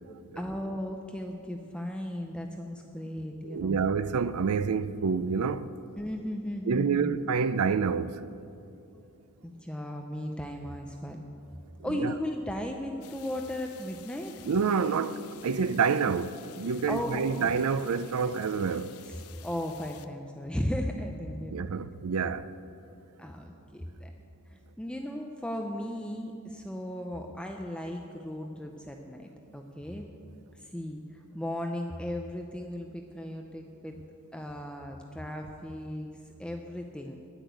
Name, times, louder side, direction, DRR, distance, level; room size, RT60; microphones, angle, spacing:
voice 1, 0.4-3.8 6.0-7.1 9.4-11.2 11.8-14.4 16.9-17.5 19.1-21.7 23.2-24.1 24.5-30.0 30.5-34.0 34.3-36.1 36.4-37.2, left 1 dB, 5° left, 0.6 m, -36 dB
voice 2, 3.4-5.7 6.7-8.2 11.9-12.1 14.4-18.9 21.5-22.5, right 5 dB, 80° right, 0.4 m, -28 dB
sound 1, 13.0-20.1, left 10 dB, 80° left, 0.7 m, -52 dB
10.0 x 9.8 x 8.2 m
head